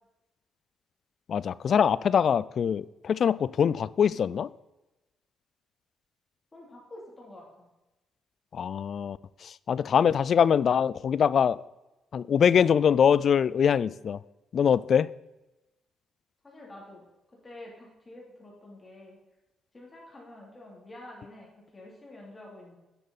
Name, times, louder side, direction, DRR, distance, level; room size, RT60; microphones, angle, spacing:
voice 1, 1.3-4.5 8.5-11.6 12.1-14.2 14.5-15.1, left 7 dB, 55° left, 19 dB, 0.3 m, -23 dB
voice 2, 6.5-7.7 16.4-19.2 19.7-22.8, left 1 dB, 25° left, -3 dB, 3.1 m, -48 dB
9.9 x 7.0 x 4.1 m, 1.0 s
cardioid pair, 90°, 0 cm